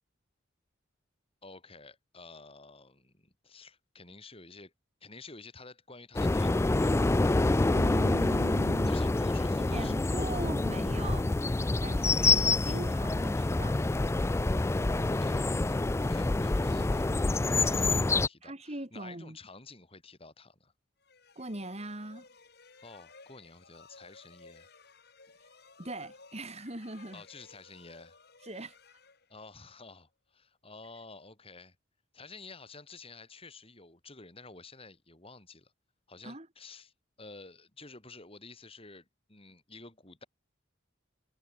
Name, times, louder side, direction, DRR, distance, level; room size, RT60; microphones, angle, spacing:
voice 1, 1.4-4.7 5.0-7.2 8.9-10.3 15.1-20.7 22.8-24.7 27.1-28.2 29.3-31.8 32.1-35.7 36.1-40.3, left 3 dB, 30° left, 5.2 m, -51 dB
sound 1, 6.1-18.3, left 2 dB, 15° left, 0.3 m, -27 dB
voice 2, 7.7-9.0 9.7-13.8 17.7-17.9 18.4-19.4 21.3-22.3 25.8-27.2 28.4-28.8 36.2-36.5, right 1 dB, 35° right, 3.3 m, -40 dB
sound 2, 21.0-29.8, left 4 dB, 55° left, 4.3 m, -57 dB
head